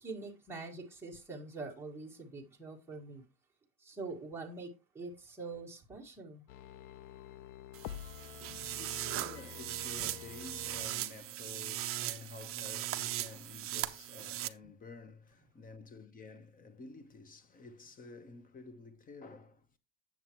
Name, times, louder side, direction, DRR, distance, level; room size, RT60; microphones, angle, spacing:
voice 1, 0.0-3.2 3.8-6.4 8.5-8.7 14.6-14.7, right 3 dB, 5° right, 1.6 m, -45 dB
sound 1, 6.5-10.9 11.3-11.4, left 11 dB, 50° left, 0.7 m, -48 dB
sound 2, 7.7-14.5, right 14 dB, 30° right, 0.6 m, -39 dB
voice 2, 8.2-19.7, left 3 dB, 20° left, 0.9 m, -51 dB
8.8 x 7.4 x 3.0 m
cardioid pair, 150°, 43 cm